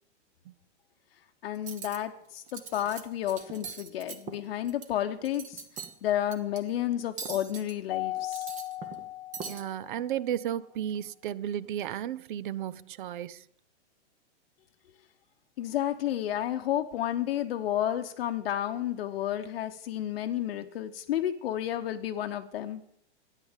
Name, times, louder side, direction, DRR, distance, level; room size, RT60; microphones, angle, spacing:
voice 1, 1.4-5.6 6.0-8.5 15.6-22.8, left 11 dB, 55° left, 0.9 m, -31 dB
Cutlery silverware, 1.5-2.0 2.4-3.0 3.3-4.9 5.2-5.9 6.3-6.6 7.2-7.7 8.2-9.0 9.3-9.6, right 5 dB, 20° right, 1.1 m, -41 dB
Mallet percussion, 7.9-10.3, left 16 dB, 30° left, 0.9 m, -37 dB
voice 2, 9.5-13.5, right 10 dB, 45° right, 0.5 m, -34 dB
12.5 x 10.0 x 7.3 m
hypercardioid pair, 150°, 35 cm